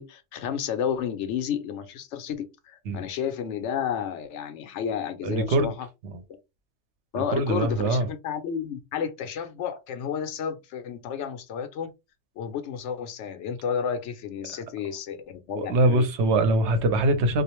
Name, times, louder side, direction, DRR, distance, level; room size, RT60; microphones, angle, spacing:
voice 1, 0.0-5.9 7.1-11.9 12.4-16.1, left 8 dB, 85° left, 0.9 m, -31 dB
voice 2, 5.2-5.7 6.0-6.2 7.1-8.1 15.5-17.4, right 2 dB, 80° right, 0.9 m, -23 dB
2.4 x 2.0 x 2.9 m
omnidirectional pair, 1.2 m